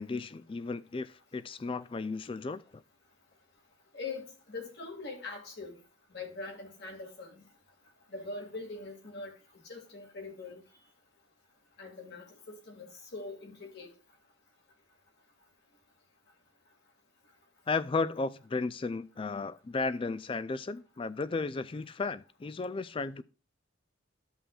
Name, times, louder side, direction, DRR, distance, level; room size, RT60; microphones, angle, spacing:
voice 1, 0.0-2.6 17.7-23.2, left 3 dB, 25° left, 0.3 m, -34 dB
voice 2, 3.9-5.8 6.1-7.4 8.1-9.3 9.6-10.6 11.8-12.9 13.1-13.9, left 3 dB, 55° left, 2.2 m, -42 dB
14.5 x 5.6 x 2.4 m
head